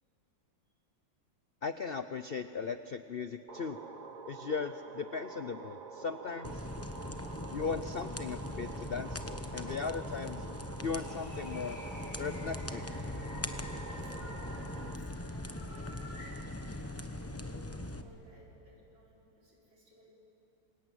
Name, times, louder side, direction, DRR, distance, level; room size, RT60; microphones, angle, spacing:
voice 1, 1.6-3.8 4.2-6.7 7.5-10.5 10.8-11.8 12.2-12.9, left 5 dB, 70° left, 10 dB, 0.5 m, -37 dB
sound 1, 3.5-15.0, right 4 dB, 40° right, 0.6 m, -47 dB
sound 2, 6.4-18.0, left 1 dB, 10° left, 0.7 m, -41 dB
sound 3, 10.9-16.3, left 1 dB, 40° left, 3.6 m, -52 dB
voice 2, 13.9-20.1, left 1 dB, 75° right, -4 dB, 5.7 m, -60 dB
27.0 x 21.5 x 9.3 m, 2.9 s
omnidirectional pair, 1.9 m